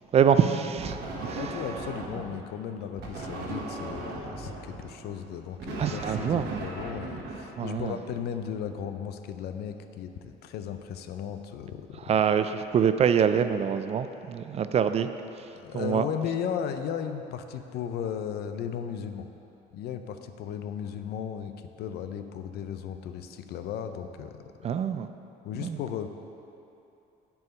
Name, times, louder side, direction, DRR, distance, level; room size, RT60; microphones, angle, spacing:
voice 1, 0.1-1.6 5.8-6.6 7.6-8.0 12.0-15.1 15.7-16.1 24.6-25.1 25.6-25.8, right 8 dB, 40° right, 10 dB, 0.4 m, -25 dB
sound 1, 0.8-2.4 3.0-8.1, right 2 dB, 80° right, 1.4 m, -38 dB
voice 2, 1.3-12.1 15.6-19.3 19.7-21.5 21.8-24.5 25.4-26.1, left 8 dB, 70° left, 8 dB, 0.5 m, -35 dB
9.5 x 4.7 x 5.2 m, 2.8 s
cardioid pair, 110°, 17 cm